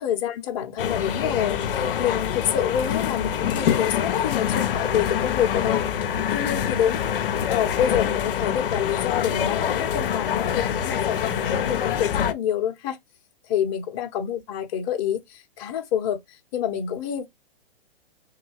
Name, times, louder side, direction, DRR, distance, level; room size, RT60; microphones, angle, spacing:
voice 1, 0.0-5.8 6.3-7.0 7.5-13.0 13.5-16.2 16.5-17.3, left 9 dB, 30° left, 0.9 m, -27 dB
sound 1, 0.8-12.3, left 9 dB, 60° left, 0.7 m, -25 dB
3.9 x 2.7 x 3.1 m
hypercardioid pair, 130°, 30 cm